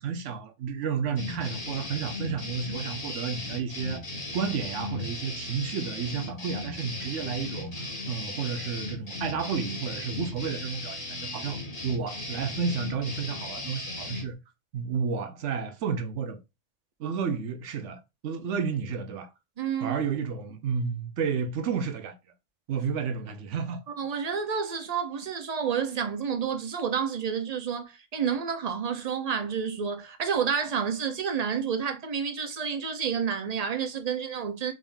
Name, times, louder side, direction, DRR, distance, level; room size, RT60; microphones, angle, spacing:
voice 1, 0.0-4.0 4.3-7.7 8.1-14.4 14.7-16.4 17.0-19.3 19.8-22.2 22.7-23.8, right 6 dB, 75° right, 1.1 m, -31 dB
sound 1, 1.2-14.3, left 2 dB, 35° left, 1.2 m, -36 dB
voice 2, 19.6-20.0 23.9-34.7, right 7 dB, 45° right, 0.6 m, -30 dB
3.8 x 3.5 x 2.5 m
omnidirectional pair, 1.3 m